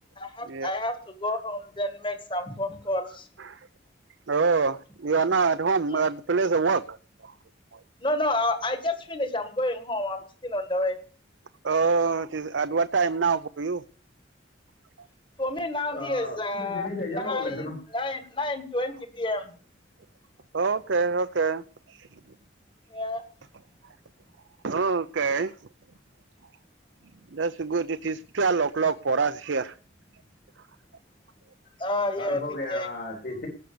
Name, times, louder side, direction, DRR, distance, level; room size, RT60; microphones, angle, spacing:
voice 1, 0.2-3.2 5.9-6.0 8.0-11.0 15.4-16.9 17.2-19.5 22.9-23.2 31.8-32.4 32.7-32.9, left 1 dB, 25° left, 1.9 m, -29 dB
voice 2, 4.3-7.0 7.2-7.3 7.7-7.8 11.6-13.8 20.5-21.6 21.9-22.1 24.6-25.5 27.3-29.7, right 4 dB, 70° right, 0.7 m, -25 dB
voice 3, 15.9-17.8 32.2-33.5, left 2 dB, 50° left, 3.9 m, -34 dB
19.0 x 6.5 x 6.9 m
head